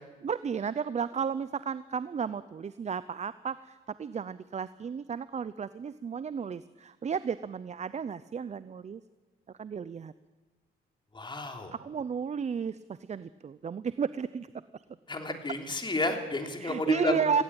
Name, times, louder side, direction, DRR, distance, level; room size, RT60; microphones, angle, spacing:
voice 1, 0.2-9.0 9.6-10.1 11.8-12.8 13.1-14.5 14.7-14.8 16.6-17.4, right 6 dB, 35° right, 15 dB, 0.7 m, -33 dB
voice 2, 11.1-11.7 15.1-17.4, left 2 dB, 25° left, 4 dB, 3.2 m, -31 dB
18.0 x 16.0 x 8.8 m, 1.2 s
cardioid pair, 90°, 20 cm